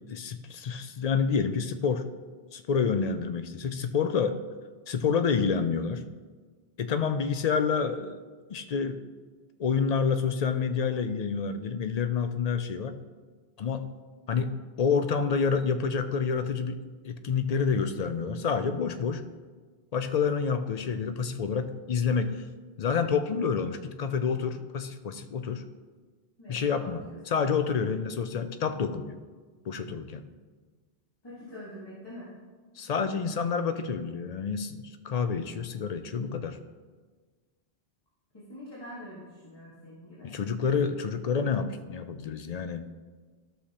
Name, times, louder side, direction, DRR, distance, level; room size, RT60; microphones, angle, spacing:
voice 1, 0.0-2.1 2.5-4.4 4.9-6.0 6.8-8.1 8.5-9.0 9.6-13.0 13.6-13.9 14.3-16.8 17.0-19.2 19.9-22.4 22.8-25.6 26.5-29.2 29.7-30.3 32.8-36.6 40.2-42.9, left 6 dB, 50° left, 9 dB, 0.5 m, -28 dB
voice 2, 26.4-27.2 31.2-32.3 38.3-40.3, equal, 25° left, -8 dB, 1.8 m, -45 dB
13.0 x 6.4 x 2.9 m, 1.4 s
omnidirectional pair, 1.0 m